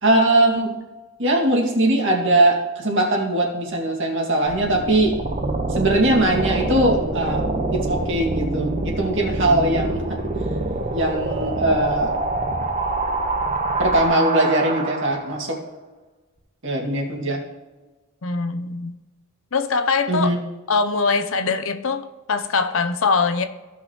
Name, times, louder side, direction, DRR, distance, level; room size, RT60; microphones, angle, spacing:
voice 1, 0.0-0.7 1.2-5.2 5.7-7.4 7.7-10.0 10.9-12.1 13.8-15.6 16.6-17.4 20.1-20.4, right 1 dB, 65° right, 2.2 m, -20 dB
sound 1, 4.5-15.4, right 2 dB, 35° right, 1.1 m, -25 dB
voice 2, 18.2-18.9 19.5-20.3 20.7-23.4, left 4 dB, 70° left, 0.7 m, -22 dB
16.0 x 6.0 x 3.0 m
head